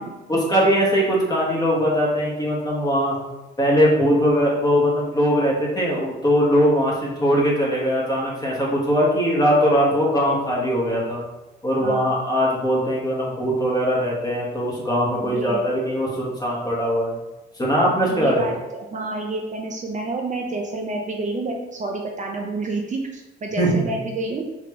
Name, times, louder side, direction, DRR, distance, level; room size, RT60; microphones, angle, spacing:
voice 1, 0.3-3.1 3.6-11.2 11.6-17.2 17.6-18.4 23.6-23.8, equal, 20° left, -4 dB, 1.4 m, -20 dB
voice 2, 11.8-12.1 15.2-15.6 18.1-24.4, right 2 dB, 40° right, 1 dB, 0.6 m, -29 dB
4.3 x 2.9 x 3.0 m, 1.1 s
cardioid pair, 90°, 20 cm